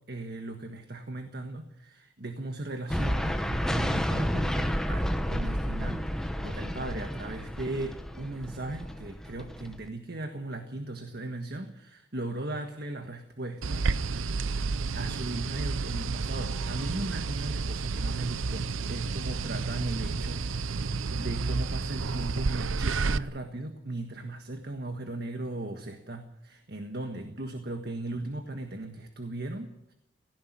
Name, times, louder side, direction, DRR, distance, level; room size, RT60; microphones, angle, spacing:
voice 1, 0.1-13.9 14.9-29.9, right 2 dB, 55° right, 5 dB, 1.6 m, -37 dB
sound 1, 2.9-9.9, equal, 5° left, 1.1 m, -31 dB
sound 2, 13.6-23.2, right 4 dB, 85° right, 0.7 m, -31 dB
18.0 x 15.5 x 9.5 m, 0.86 s
head